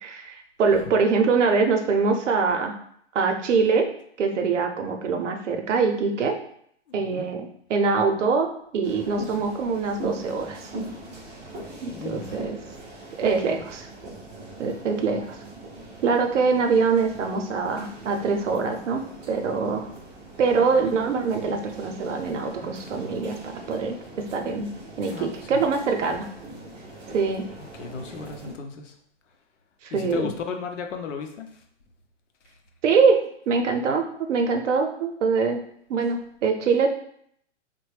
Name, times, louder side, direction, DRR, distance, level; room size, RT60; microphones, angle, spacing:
voice 1, 0.0-2.7 3.1-3.9 4.2-6.4 6.9-10.7 11.8-12.6 13.2-13.9 14.6-15.4 16.0-19.9 20.4-24.7 25.0-26.3 27.1-27.5 29.8-30.3 32.8-35.6 35.9-36.9, right 4 dB, 75° right, 4 dB, 0.7 m, -24 dB
voice 2, 6.9-7.3 11.9-12.5 25.0-25.6 27.8-28.9 29.9-31.5, left 6 dB, 80° left, 4 dB, 0.7 m, -35 dB
sound 1, 8.8-28.5, right 2 dB, 15° right, 0.4 m, -41 dB
3.1 x 2.2 x 3.2 m, 0.65 s
hypercardioid pair, 145°, 36 cm